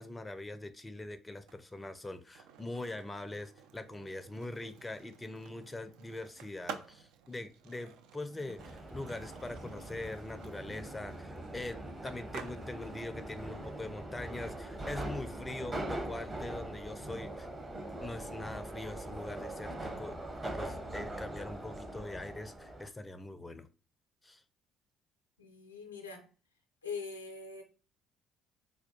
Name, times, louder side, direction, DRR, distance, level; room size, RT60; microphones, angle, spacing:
voice 1, 0.0-17.5 18.0-23.7 24.2-24.4, left 2 dB, 15° left, 0.4 m, -43 dB
Skateboard, 1.4-17.2, right 8 dB, 65° right, 0.3 m, -53 dB
Subway metro underground, 8.6-22.9, right 1 dB, 25° right, 0.8 m, -42 dB
voice 2, 25.4-26.3 26.8-27.6, left 5 dB, 85° left, 0.5 m, -43 dB
4.3 x 2.2 x 2.7 m
figure-of-eight pair, 50°, 0 cm